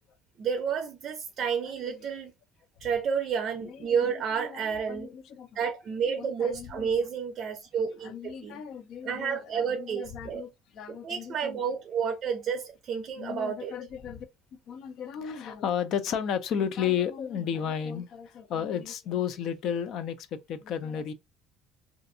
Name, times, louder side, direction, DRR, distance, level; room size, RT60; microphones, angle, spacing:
voice 1, 0.4-2.3 2.8-5.1 5.6-8.6 9.0-10.4 10.9-13.8, right 6 dB, 45° right, 0.5 m, -30 dB
voice 2, 3.6-5.6 6.2-6.9 8.0-11.6 13.2-14.3 14.7-21.1, left 8 dB, 55° left, 0.4 m, -34 dB
2.5 x 2.4 x 2.6 m
cardioid pair, 145°, 0 cm